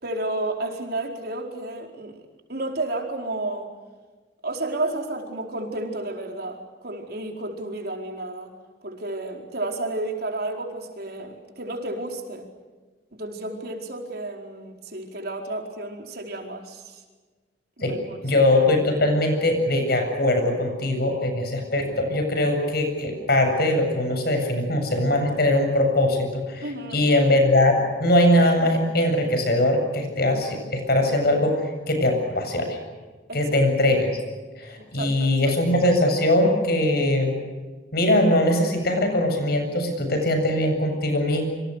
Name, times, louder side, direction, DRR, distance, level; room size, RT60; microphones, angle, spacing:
voice 1, 0.0-2.2 2.5-3.7 4.4-8.5 8.8-12.5 13.1-17.0 17.8-18.0 26.6-27.0 33.3-33.4 34.8-35.5, right 2 dB, 60° right, 3 dB, 4.6 m, -31 dB
voice 2, 18.2-26.6 26.9-32.8 33.3-34.1 34.6-37.4 37.9-41.5, left 1 dB, 60° left, 5 dB, 7.6 m, -21 dB
28.0 x 26.0 x 6.6 m, 1.4 s
head